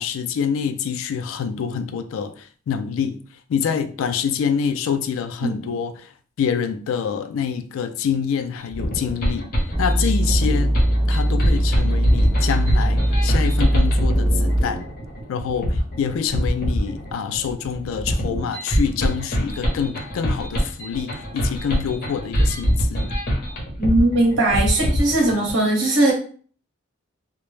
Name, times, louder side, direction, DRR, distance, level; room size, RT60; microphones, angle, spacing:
voice 1, 0.0-3.2 3.5-6.1 6.4-9.5 9.8-10.7 11.1-14.8 15.3-23.1, left 7 dB, 85° left, 0.3 m, -26 dB
sound 1, 8.6-25.5, equal, 45° left, 0.7 m, -24 dB
sound 2, 9.7-14.6, equal, ahead, 0.3 m, -20 dB
voice 2, 23.8-26.1, right 2 dB, 65° right, 1.0 m, -19 dB
2.1 x 2.0 x 3.1 m
head